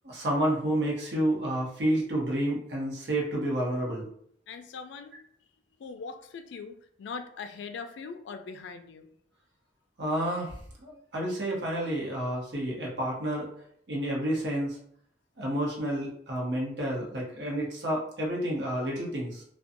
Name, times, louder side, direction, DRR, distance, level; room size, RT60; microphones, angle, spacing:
voice 1, 0.0-4.1 10.0-13.5 13.9-14.8 15.4-19.4, right 1 dB, 70° right, -3 dB, 0.8 m, -30 dB
voice 2, 4.5-5.2 5.8-9.1, left 5 dB, 85° left, 7 dB, 0.3 m, -41 dB
2.5 x 2.2 x 2.5 m, 0.65 s
head